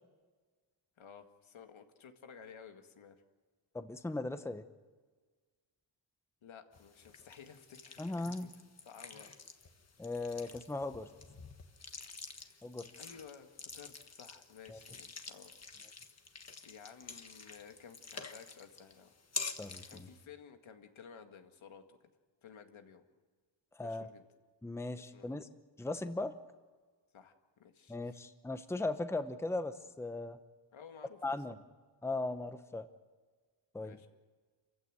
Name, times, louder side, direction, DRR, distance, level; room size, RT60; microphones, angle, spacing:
voice 1, 1.0-3.2 6.4-8.5 8.8-9.4 12.3-12.6 13.0-15.5 16.6-19.1 19.9-22.0 22.4-23.0 23.8-24.2 25.0-25.4 27.1-28.2 30.7-31.4 33.8-34.1, left 7 dB, 90° left, 6 dB, 2.1 m, -54 dB
voice 2, 3.7-4.7 8.0-8.5 10.0-11.1 12.6-12.9 14.7-14.8 19.6-20.1 23.8-24.1 24.6-25.5 25.8-26.3 27.9-30.4 31.2-31.6 32.0-32.9 33.7-34.0, left 2 dB, 5° left, 10 dB, 0.8 m, -38 dB
sound 1, 6.7-20.2, left 5 dB, 35° left, 1.4 m, -48 dB
28.0 x 15.5 x 9.0 m, 1.5 s
wide cardioid pair, 165°, 46 cm